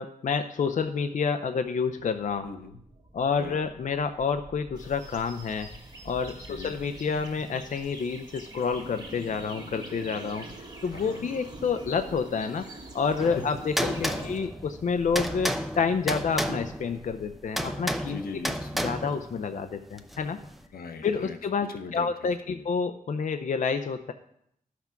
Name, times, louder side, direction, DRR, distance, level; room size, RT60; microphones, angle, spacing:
voice 1, 0.0-2.5 3.1-5.7 6.0-10.5 10.8-12.7 12.9-18.2 18.8-20.4 21.0-24.1, left 5 dB, 55° left, 8 dB, 0.5 m, -29 dB
sound 1, 1.6-19.2, right 2 dB, 50° right, 1.7 m, -47 dB
voice 2, 2.4-2.8 3.4-3.6 6.5-6.8 10.9-11.2 13.4-13.5 14.0-14.3 18.1-18.7 20.7-21.4 21.7-22.1 22.5-22.6, left 5 dB, 85° left, 7 dB, 1.0 m, -39 dB
sound 2, 4.7-14.4, right 2 dB, 25° right, 2.0 m, -48 dB
sound 3, 13.2-20.6, equal, ahead, 0.6 m, -33 dB
12.0 x 6.0 x 5.8 m, 0.72 s
wide cardioid pair, 110°, 15 cm